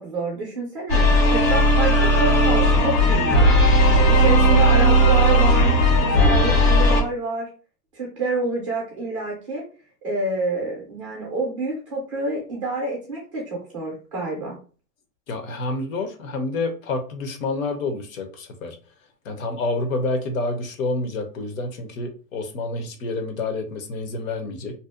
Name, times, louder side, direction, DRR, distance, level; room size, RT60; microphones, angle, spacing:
voice 1, 0.0-3.7 4.1-5.7 6.1-7.5 7.9-9.6 10.0-14.6, right 2 dB, 20° right, -2 dB, 0.4 m, -28 dB
sound 1, 0.9-7.0, equal, 75° left, 1.3 m, -16 dB
voice 2, 15.3-18.8 19.2-24.7, left 2 dB, 55° left, 5 dB, 0.6 m, -28 dB
2.6 x 2.0 x 2.3 m, 0.37 s
hypercardioid pair, 150°, 48 cm